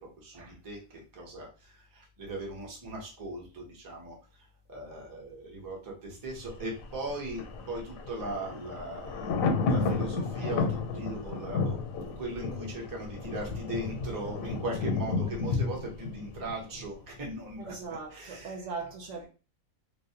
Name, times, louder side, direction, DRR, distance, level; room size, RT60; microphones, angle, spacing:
voice 1, 0.2-11.7 12.2-17.7 18.1-18.6, right 1 dB, 25° right, 0.5 m, -39 dB
Thunder, 6.3-17.2 17.5-17.6, left 4 dB, 85° left, 1.0 m, -32 dB
voice 2, 17.7-19.3, right 4 dB, 70° right, 0.9 m, -39 dB
2.4 x 2.1 x 2.7 m
omnidirectional pair, 1.4 m